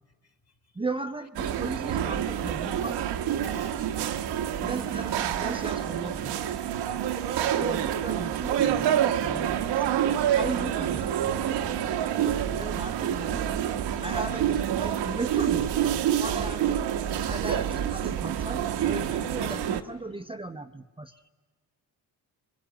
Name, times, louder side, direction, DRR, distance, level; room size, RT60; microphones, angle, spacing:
voice 1, 0.8-3.0 4.6-6.5 7.5-9.9 10.3-11.1 12.5-13.4 14.0-15.8 16.2-16.9 17.3-21.1, right 2 dB, 15° right, 8 dB, 0.7 m, -36 dB
sound 1, 1.4-19.8, right 10 dB, 90° right, 1.2 m, -27 dB
voice 2, 3.4-3.9 6.9-7.0 21.1-21.3, left 4 dB, 40° left, 4 dB, 2.1 m, -46 dB
Drum kit, 11.5-11.7 12.2-19.4, right 6 dB, 55° right, 1.1 m, -39 dB
23.0 x 22.0 x 9.0 m, 1.4 s
cardioid pair, 75°, 39 cm